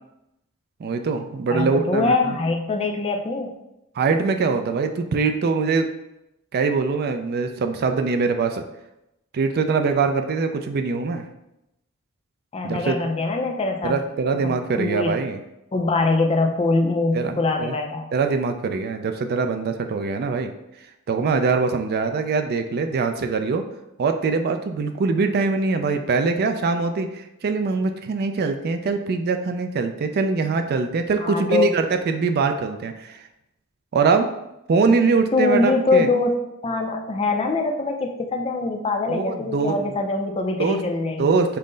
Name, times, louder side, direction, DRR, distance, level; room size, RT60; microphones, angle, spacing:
voice 1, 0.8-2.3 4.0-5.9 6.5-8.6 9.3-11.2 12.6-13.0 13.8-15.4 17.1-17.7 18.1-20.5 21.1-23.6 24.0-33.2 33.9-34.3 34.7-36.1 39.1-39.9 40.6-40.8 41.2-41.6, right 4 dB, 45° right, 7 dB, 0.3 m, -23 dB
voice 2, 1.5-3.6 12.5-14.0 14.3-15.2 15.7-18.1 31.2-31.7 35.3-41.4, left 3 dB, 25° left, 4 dB, 0.4 m, -23 dB
5.5 x 2.1 x 3.8 m, 0.87 s
head